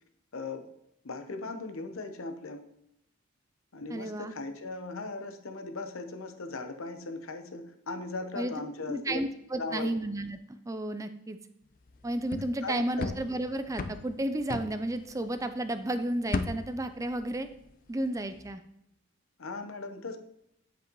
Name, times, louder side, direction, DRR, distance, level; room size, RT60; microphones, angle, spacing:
voice 1, 0.3-0.7 1.0-2.6 3.7-9.2 9.6-9.9 12.6-13.2 19.4-20.2, left 3 dB, 75° left, 7 dB, 0.9 m, -38 dB
voice 2, 3.9-4.3 8.3-8.5 8.9-11.4 12.0-17.5 17.9-18.6, right 1 dB, 15° right, 10 dB, 0.4 m, -32 dB
sound 1, 11.9-15.6 15.9-17.9 18.2-18.5, left 3 dB, 40° left, 0.5 m, -37 dB
8.1 x 7.8 x 3.1 m, 0.81 s
head